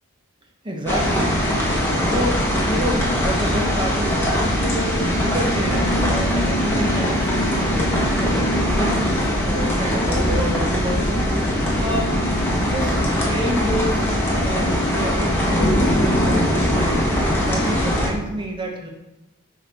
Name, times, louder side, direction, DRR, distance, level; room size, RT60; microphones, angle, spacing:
voice 1, 0.6-1.5 2.0-4.2 4.6-9.2 9.4-11.5 11.8-12.1 12.6-13.0 13.3-14.0 14.4-17.0 17.5-18.9, right 1 dB, 20° right, 0 dB, 0.9 m, -29 dB
sound 1, 0.9-18.1, equal, 10° left, 1.1 m, -21 dB
7.1 x 4.2 x 3.5 m, 0.97 s
head